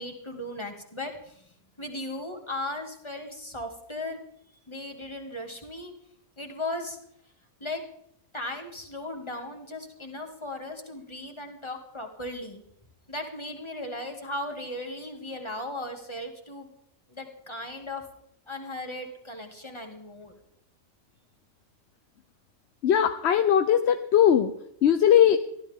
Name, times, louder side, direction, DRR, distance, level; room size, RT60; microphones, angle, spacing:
voice 1, 0.0-1.4 1.8-4.2 4.7-5.9 6.4-7.0 7.6-7.8 8.3-12.6 13.1-16.7 17.1-18.0 18.5-20.3, left 1 dB, 20° left, 3 dB, 2.2 m, -37 dB
voice 2, 22.8-24.5 24.8-25.4, left 9 dB, 60° left, 9 dB, 0.9 m, -20 dB
22.5 x 15.0 x 3.6 m, 0.72 s
omnidirectional pair, 1.4 m